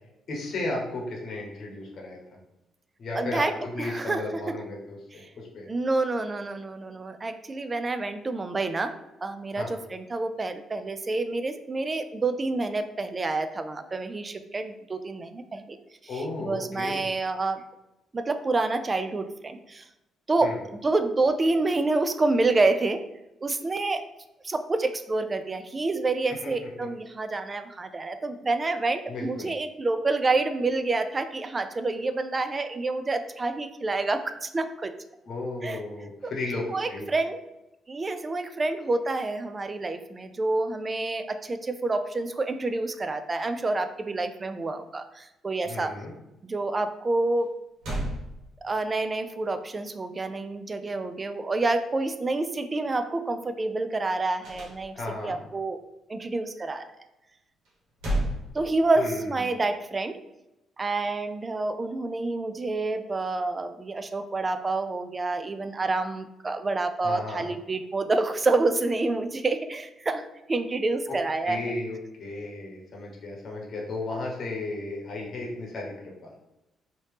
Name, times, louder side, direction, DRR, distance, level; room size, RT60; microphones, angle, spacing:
voice 1, 0.3-2.2 3.0-5.7 9.5-9.7 16.1-17.1 20.4-20.6 26.4-26.5 26.8-26.9 29.1-29.5 35.3-37.1 45.6-46.1 54.9-55.4 59.0-59.2 67.0-67.5 71.1-71.2 71.4-76.1, left 2 dB, 55° left, -1 dB, 0.9 m, -34 dB
voice 2, 3.2-4.6 5.2-5.3 5.7-8.9 9.2-15.8 16.0-17.6 18.1-19.8 20.3-23.0 23.4-24.0 24.4-34.9 35.6-35.8 36.2-36.3 36.7-37.4 37.9-45.9 46.4-47.5 48.6-55.8 56.1-56.8 58.5-60.2 60.8-71.7, right 3 dB, 30° right, 9 dB, 0.3 m, -28 dB
sound 1, 47.4-47.5 47.8-49.0 54.4-55.3 57.6-59.2, right 1 dB, 90° right, 1.2 m, -32 dB
3.0 x 2.8 x 3.3 m, 0.94 s
cardioid pair, 90°, 0 cm